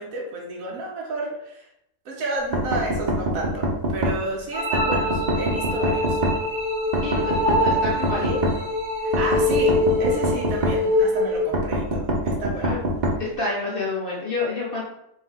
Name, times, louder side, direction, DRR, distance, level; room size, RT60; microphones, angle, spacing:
voice 1, 0.0-1.7 2.1-6.2 9.2-12.8, right 2 dB, 65° right, -1 dB, 1.1 m, -31 dB
sound 1, 2.5-4.2 4.7-6.4 6.9-8.6 9.1-10.8 11.5-13.2, right 1 dB, 85° right, 0.4 m, -24 dB
sound 2, 4.5-11.5, left 2 dB, 30° right, 0.8 m, -24 dB
voice 2, 7.0-8.4 12.6-12.8 13.2-14.8, left 3 dB, 60° left, -4 dB, 0.5 m, -27 dB
3.6 x 2.6 x 3.4 m, 0.80 s
omnidirectional pair, 1.7 m